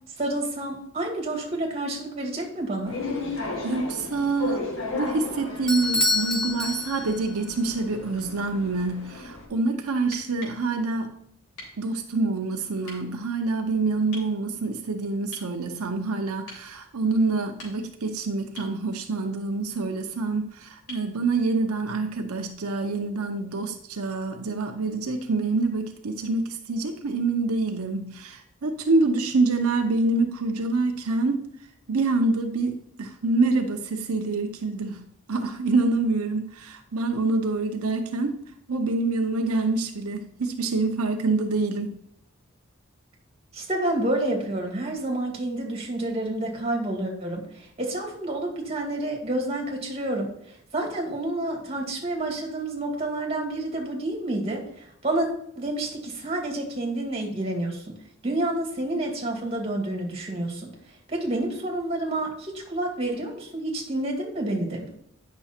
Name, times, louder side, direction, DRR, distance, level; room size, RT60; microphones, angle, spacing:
voice 1, 0.2-3.0 43.5-55.3 55.6-57.9 58.2-60.7 61.1-64.9, right 1 dB, 30° right, 1 dB, 2.3 m, -29 dB
sound 1, 2.9-9.4, left 3 dB, 70° left, 1.7 m, -35 dB
voice 2, 3.6-4.6 4.9-11.1 11.8-31.5 31.9-38.4 38.7-42.0, right 3 dB, 90° right, 5 dB, 0.8 m, -26 dB
Bell / Doorbell, 5.7-7.4, left 2 dB, 5° left, 0.6 m, -26 dB
sound 2, 10.1-10.6 11.6-11.8 12.8-13.0 14.1-14.3 15.3-15.5 16.5-16.7 17.4-18.0 18.6-18.8 20.9-21.1 23.0-23.1, left 1 dB, 85° left, 3.7 m, -43 dB
9.0 x 6.1 x 4.4 m, 0.70 s
head